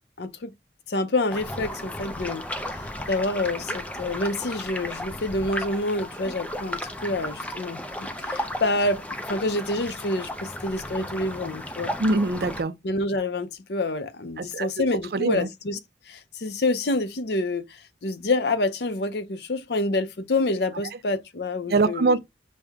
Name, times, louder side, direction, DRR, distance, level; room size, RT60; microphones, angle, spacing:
voice 1, 0.2-0.5 0.9-2.5 2.7-7.8 8.2-12.0 12.8-15.8 16.1-22.2, left 2 dB, 70° left, 0.6 m, -27 dB
sound 1, 1.3-12.6, left 1 dB, 10° left, 0.5 m, -34 dB
voice 2, 12.0-12.7 14.4-14.7 15.1-15.5 21.7-22.2, right 3 dB, 60° right, 0.5 m, -23 dB
6.3 x 2.2 x 3.5 m
head